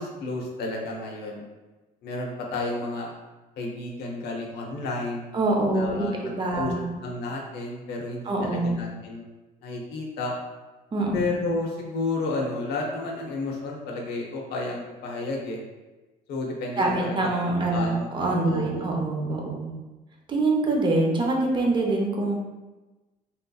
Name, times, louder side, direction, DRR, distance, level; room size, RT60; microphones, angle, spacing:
voice 1, 0.0-1.4 2.0-3.1 3.6-5.3 5.7-6.7 7.0-9.2 9.6-10.3 11.1-15.6 16.3-17.3 17.6-18.1 18.4-18.9, left 2 dB, 75° left, 0 dB, 0.7 m, -31 dB
voice 2, 5.3-6.9 8.2-8.8 10.9-11.2 16.8-19.7 20.3-22.4, right 2 dB, 30° right, -1 dB, 0.7 m, -25 dB
3.5 x 2.7 x 2.3 m, 1.1 s
cardioid pair, 110°, 17 cm